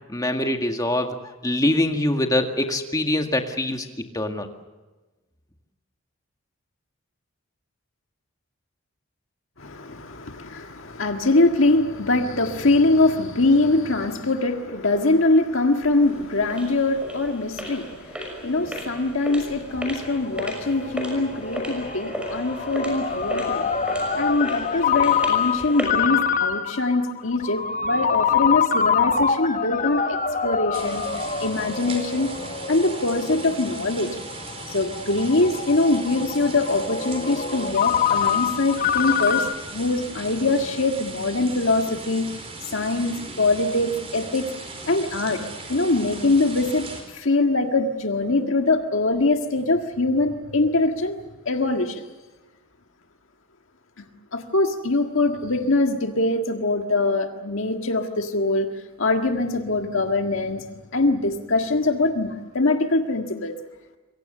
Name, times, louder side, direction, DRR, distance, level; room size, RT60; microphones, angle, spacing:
voice 1, 0.1-3.9 4.1-4.5, left 1 dB, 15° left, 4 dB, 1.9 m, -24 dB
voice 2, 9.6-30.2 30.4-32.3 32.7-34.2 34.7-39.5 39.7-42.2 42.7-44.5 44.8-45.4 45.7-51.2 51.5-52.0 54.0-54.1 54.3-58.7 59.0-60.6 60.9-63.5, left 2 dB, 65° left, 5 dB, 1.7 m, -23 dB
sound 1, 15.8-26.1, equal, 5° right, 6.0 m, -35 dB
Ringtone, 19.8-39.5, left 7 dB, 35° left, 1.1 m, -25 dB
sound 2, 30.7-47.0, right 3 dB, 25° right, 4.6 m, -38 dB
27.5 x 23.0 x 6.7 m, 1.2 s
head